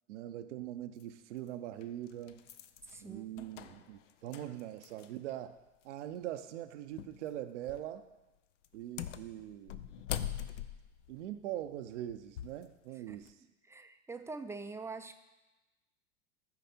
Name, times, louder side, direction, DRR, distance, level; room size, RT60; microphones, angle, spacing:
voice 1, 0.1-2.4 3.0-5.6 5.8-8.1 8.7-9.8 11.1-13.3, right 12 dB, 75° right, 9 dB, 0.7 m, -42 dB
sound 1, 1.0-1.1 1.8-5.3 5.6-5.7 7.0-7.2 7.6-8.0 8.6-12.6 13.1-13.3, left 11 dB, 80° left, 0.6 m, -43 dB
voice 2, 2.8-3.6 13.1-13.2 13.6-15.2, right 4 dB, 10° right, 8 dB, 0.4 m, -45 dB
13.5 x 4.8 x 4.3 m, 1.1 s
hypercardioid pair, 95°, 36 cm